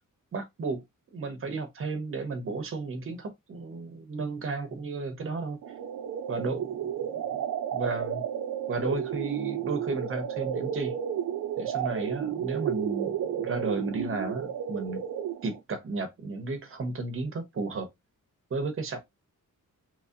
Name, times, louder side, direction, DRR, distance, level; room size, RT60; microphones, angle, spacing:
voice 1, 0.3-0.8 1.1-5.6 6.3-7.4 7.7-8.2 8.7-10.9 11.6-15.1 15.4-17.9 18.5-19.0, right 3 dB, 40° right, 0.8 m, -33 dB
sound 1, 5.6-15.6, right 9 dB, 75° right, 0.5 m, -32 dB
3.0 x 2.7 x 2.4 m
wide cardioid pair, 165°, 32 cm